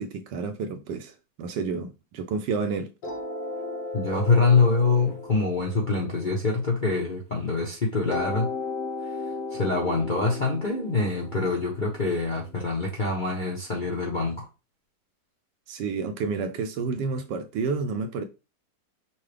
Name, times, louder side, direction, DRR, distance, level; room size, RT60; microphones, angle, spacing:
voice 1, 0.0-2.9 15.7-18.2, right 4 dB, 75° right, 1.1 m, -30 dB
sound 1, 3.0-7.4 8.1-13.0, left 3 dB, 65° left, 1.5 m, -36 dB
voice 2, 3.9-8.5 9.5-14.5, left 3 dB, 45° left, 0.6 m, -25 dB
5.7 x 2.3 x 3.3 m
omnidirectional pair, 2.0 m